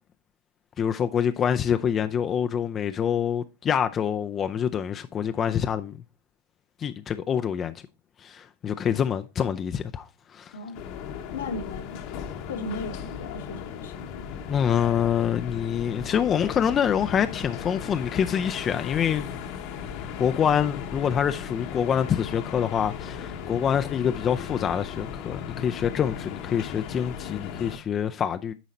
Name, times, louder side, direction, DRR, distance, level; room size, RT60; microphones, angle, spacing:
voice 1, 0.8-6.0 6.8-7.7 8.2-10.5 14.5-19.3 20.2-28.5, left 8 dB, 30° left, 0.5 m, -26 dB
sound 1, 10.7-27.8, left 8 dB, 55° left, 1.1 m, -37 dB
voice 2, 11.3-12.0 12.4-14.3, left 3 dB, 80° left, 1.5 m, -36 dB
10.5 x 4.0 x 4.3 m
hypercardioid pair, 105°, 0 cm